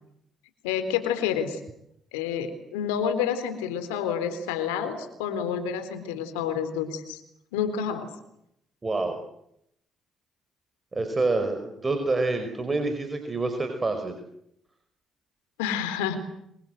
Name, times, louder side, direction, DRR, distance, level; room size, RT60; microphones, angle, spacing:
voice 1, 0.6-1.6 2.1-7.2 7.5-8.1 15.6-16.2, left 8 dB, 90° left, 10 dB, 3.7 m, -29 dB
voice 2, 8.8-9.2 10.9-14.2, right 3 dB, 30° right, 6 dB, 5.2 m, -27 dB
27.0 x 23.5 x 8.0 m, 0.77 s
hypercardioid pair, 55°, 0 cm